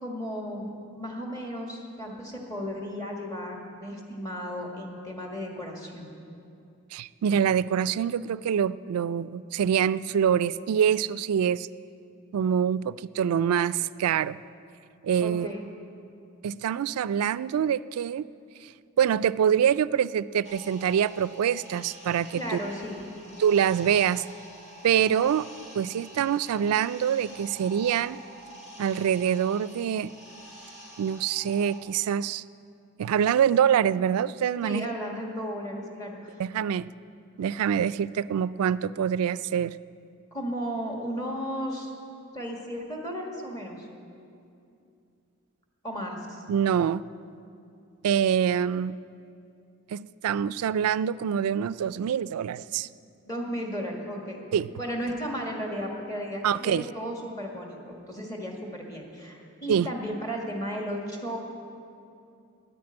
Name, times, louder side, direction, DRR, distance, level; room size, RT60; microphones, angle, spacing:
voice 1, 0.0-6.1 15.2-15.6 22.4-23.0 34.6-36.3 40.3-41.9 42.3-43.9 45.8-46.4 53.2-54.4 54.8-61.4, equal, 15° left, 0 dB, 1.6 m, -34 dB
voice 2, 6.9-11.7 12.3-14.4 15.0-15.5 16.4-18.2 19.0-22.6 23.4-24.2 24.8-25.5 25.7-28.2 28.8-30.1 31.0-32.4 33.0-34.9 36.4-36.9 37.4-39.8 46.5-47.0 48.0-49.0 49.9-52.9 54.5-54.7 56.4-56.9 59.7-59.9, right 8 dB, 85° right, 18 dB, 0.3 m, -25 dB
sound 1, 20.4-31.8, right 1 dB, 55° left, 2.0 m, -47 dB
10.5 x 9.5 x 8.7 m, 2.6 s
head